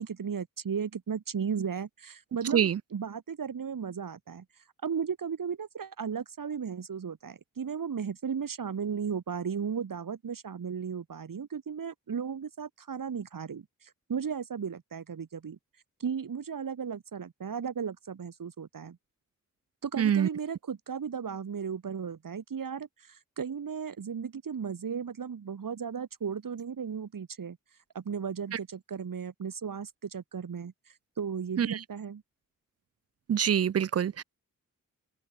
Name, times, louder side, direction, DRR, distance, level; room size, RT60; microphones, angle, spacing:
voice 1, 0.0-4.5 4.8-15.6 16.0-19.0 19.8-27.6 27.9-30.7 31.2-32.2, right 6 dB, 75° right, 4.0 m, -35 dB
voice 2, 20.0-20.3 31.6-31.7 33.3-34.2, right 9 dB, 45° right, 0.5 m, -25 dB
open air
cardioid pair, 50°, 33 cm